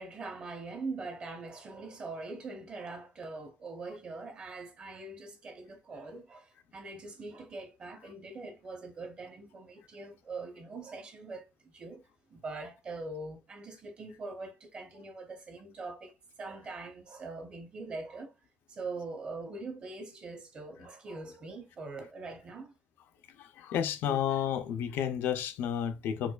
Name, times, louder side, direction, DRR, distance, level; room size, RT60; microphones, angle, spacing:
voice 1, 0.0-12.0 12.3-18.3 18.7-22.7, right 3 dB, 30° right, 0.8 m, -42 dB
voice 2, 23.4-26.3, left 9 dB, 90° left, 0.5 m, -31 dB
4.5 x 2.2 x 2.3 m
cardioid pair, 180°, 3 cm